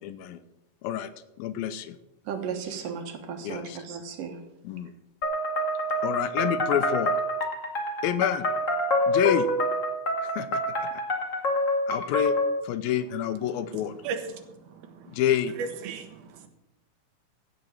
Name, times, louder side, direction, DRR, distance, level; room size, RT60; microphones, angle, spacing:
voice 1, 0.0-0.4 0.8-1.1 1.4-2.0 3.4-3.8 4.6-4.9 6.0-7.2 8.0-8.5 9.1-9.5 10.2-10.9 11.9-12.4 12.6-14.0 15.1-15.5, left 10 dB, 85° left, 2.6 m, -28 dB
voice 2, 2.3-4.4, right 6 dB, 70° right, 2.9 m, -35 dB
sound 1, 5.2-12.6, left 1 dB, 35° left, 1.4 m, -27 dB
voice 3, 14.0-15.2 15.6-16.5, right 5 dB, 85° right, 3.0 m, -36 dB
16.0 x 6.3 x 7.3 m
omnidirectional pair, 4.2 m